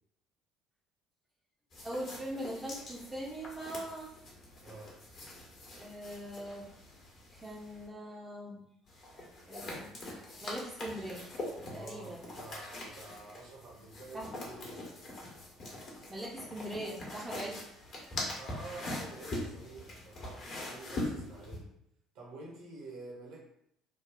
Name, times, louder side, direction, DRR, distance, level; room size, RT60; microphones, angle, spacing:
sound 1, 1.7-7.9 8.9-21.6, left 1 dB, 45° left, 1.0 m, -43 dB
voice 1, 1.8-4.1 5.7-6.7 7.4-8.7 9.2-11.3 11.7-12.3 14.1-14.3 16.1-17.6, right 1 dB, 15° right, -5 dB, 0.6 m, -41 dB
voice 2, 4.6-5.0 11.6-14.9 18.3-21.7 22.1-23.4, right 2 dB, 60° right, -3 dB, 0.9 m, -49 dB
3.3 x 2.3 x 3.6 m, 0.75 s
figure-of-eight pair, 55°, 0 cm